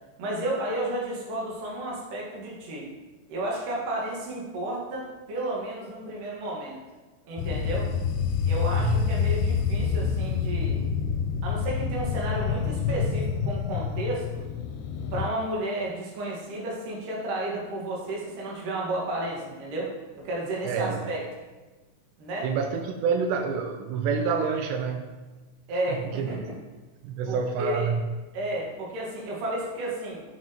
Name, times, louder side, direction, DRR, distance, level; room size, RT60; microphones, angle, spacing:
voice 1, 0.2-2.9 3.3-6.8 7.2-7.9 8.4-10.8 11.4-14.4 15.1-21.2 22.2-22.5 25.7-26.6 27.3-27.9 28.3-30.2, right 1 dB, 60° right, -3 dB, 2.7 m, -32 dB
sound 1, 7.4-15.3, left 7 dB, 80° left, 2.6 m, -27 dB
voice 2, 8.8-9.1 20.6-21.1 22.4-25.2 26.2-26.3 27.0-28.1, right 5 dB, 85° right, 5 dB, 2.8 m, -27 dB
8.6 x 6.1 x 2.9 m, 1.2 s
omnidirectional pair, 4.9 m